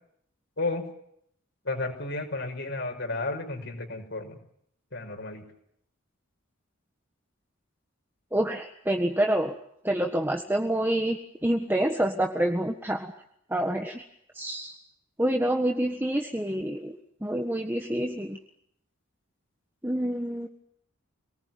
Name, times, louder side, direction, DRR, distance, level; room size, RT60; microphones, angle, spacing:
voice 1, 1.6-4.4 4.9-5.4, left 2 dB, 60° left, 2 dB, 5.9 m, -32 dB
voice 2, 8.3-9.5 9.8-11.2 11.4-13.1 13.5-14.0 14.3-14.7 15.2-16.9 17.2-18.4 19.8-20.5, right 1 dB, 10° right, 3 dB, 1.5 m, -27 dB
26.5 x 19.5 x 9.4 m, 0.72 s
head